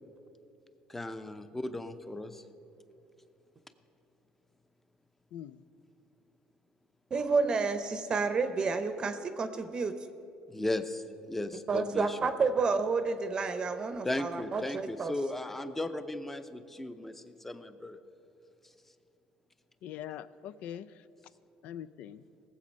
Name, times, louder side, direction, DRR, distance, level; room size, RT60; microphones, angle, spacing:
voice 1, 0.9-2.4 10.5-12.2 14.0-18.0, left 1 dB, 10° left, 10 dB, 0.7 m, -36 dB
voice 2, 5.3-5.6 19.8-20.9 21.6-22.2, left 10 dB, 75° left, 16 dB, 0.4 m, -42 dB
voice 3, 7.1-10.0 11.7-15.1, right 4 dB, 35° right, 9 dB, 0.7 m, -30 dB
18.0 x 7.6 x 5.4 m, 2.9 s
cardioid pair, 105°, 2 cm